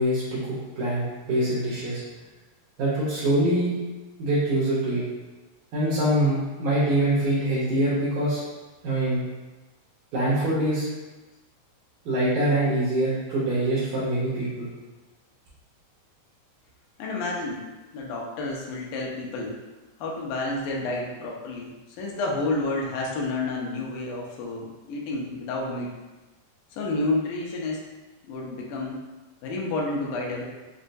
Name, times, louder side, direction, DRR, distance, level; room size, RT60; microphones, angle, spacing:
voice 1, 0.0-2.0 2.8-3.7 4.2-5.0 5.7-8.4 8.8-9.2 10.1-10.9 12.1-14.7, right 1 dB, 80° right, -9 dB, 2.3 m, -24 dB
voice 2, 17.0-17.7 17.9-19.6 20.0-25.9 26.7-27.9 28.2-29.0 29.4-30.4, left 2 dB, 85° left, -2 dB, 2.2 m, -30 dB
6.1 x 2.2 x 2.6 m, 1.2 s
omnidirectional pair, 3.5 m